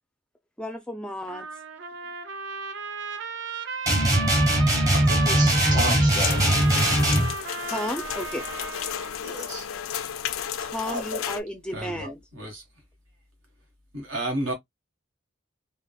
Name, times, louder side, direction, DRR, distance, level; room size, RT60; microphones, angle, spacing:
voice 1, 0.6-1.5 7.7-8.4 10.6-12.2, left 1 dB, 5° left, 0.3 m, -33 dB
Trumpet, 1.3-9.2, right 5 dB, 60° right, 0.5 m, -34 dB
sound 1, 3.9-7.3, right 1 dB, 20° right, 0.7 m, -21 dB
voice 2, 4.9-6.5 9.2-9.7 10.8-11.2 12.0-12.1, equal, 40° right, 1.8 m, -32 dB
sound 2, 6.2-11.4, left 9 dB, 90° left, 0.4 m, -33 dB
voice 3, 11.7-12.0 12.3-12.6 13.9-14.5, right 1 dB, 80° right, 1.3 m, -30 dB
3.5 x 2.1 x 2.2 m
head